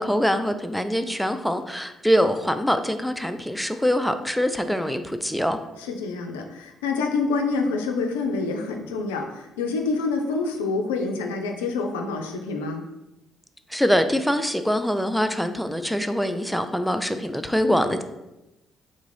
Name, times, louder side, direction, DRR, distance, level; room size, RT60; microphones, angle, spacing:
voice 1, 0.0-5.6 13.7-18.0, equal, ahead, 8 dB, 0.3 m, -24 dB
voice 2, 5.8-12.8, left 4 dB, 85° left, 3 dB, 0.3 m, -27 dB
3.7 x 2.4 x 3.2 m, 0.96 s
hypercardioid pair, 50°, 0 cm